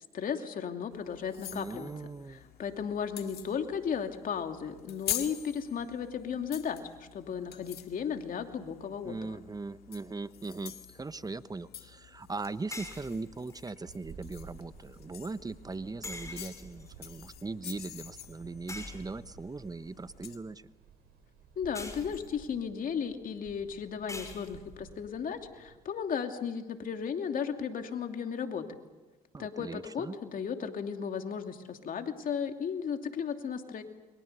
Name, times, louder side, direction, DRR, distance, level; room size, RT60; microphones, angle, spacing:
voice 1, 0.1-1.9 2.3-9.2 21.6-28.7 29.4-33.8, left 7 dB, 55° left, 5 dB, 2.8 m, -35 dB
sound 1, 0.9-20.4, left 12 dB, 70° left, 2.0 m, -46 dB
voice 2, 1.5-2.4 9.0-20.6 29.3-30.2, right 3 dB, 20° right, 14 dB, 1.1 m, -40 dB
sound 2, 12.7-13.7 16.0-17.1 18.7-19.5 21.8-22.6 24.1-24.8, left 2 dB, 20° left, 5.9 m, -44 dB
sound 3, 13.9-25.8, right 5 dB, 75° right, 5.2 m, -55 dB
29.5 x 23.5 x 6.9 m, 1.2 s
supercardioid pair, 65°, 17 cm